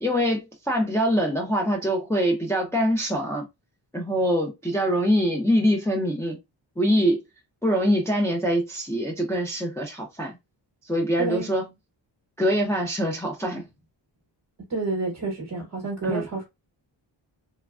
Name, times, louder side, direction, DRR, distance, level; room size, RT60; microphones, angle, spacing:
voice 1, 0.0-3.5 3.9-6.4 6.8-7.2 7.6-10.4 10.9-11.7 12.4-13.7 16.0-16.2, equal, 5° left, 0.5 m, -24 dB
voice 2, 11.2-11.5 14.7-16.4, right 3 dB, 40° right, 1.0 m, -29 dB
3.2 x 2.2 x 2.3 m
wide cardioid pair, 130°, 45 cm